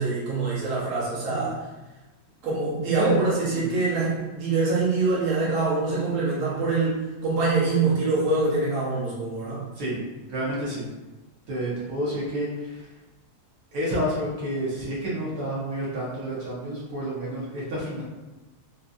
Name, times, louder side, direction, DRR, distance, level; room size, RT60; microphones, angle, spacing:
voice 1, 0.0-1.6 2.4-9.6, right 3 dB, 55° right, -6 dB, 1.2 m, -25 dB
voice 2, 2.9-3.7 9.8-10.0 10.3-10.9 11.5-12.9 13.7-18.0, equal, 75° right, -7 dB, 1.7 m, -29 dB
3.9 x 2.7 x 2.4 m, 1.1 s
omnidirectional pair, 1.9 m